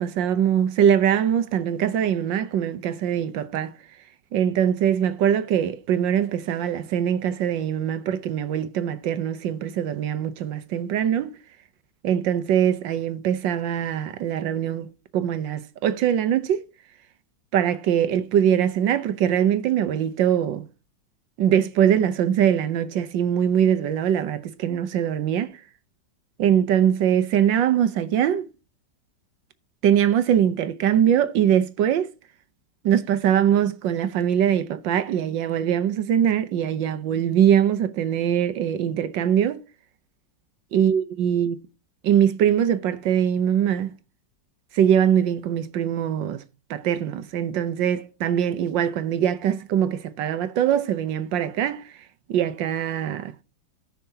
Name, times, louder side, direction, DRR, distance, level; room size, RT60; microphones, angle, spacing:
voice 1, 0.0-3.7 4.3-11.3 12.0-14.9 15.1-16.6 17.5-20.6 21.4-25.5 26.4-28.4 29.8-32.1 32.8-39.6 40.7-41.6 42.0-43.9 44.7-46.4 46.7-51.9 52.3-53.4, right 9 dB, 90° right, 1.6 m, -22 dB
17.5 x 6.0 x 2.8 m
omnidirectional pair, 1.9 m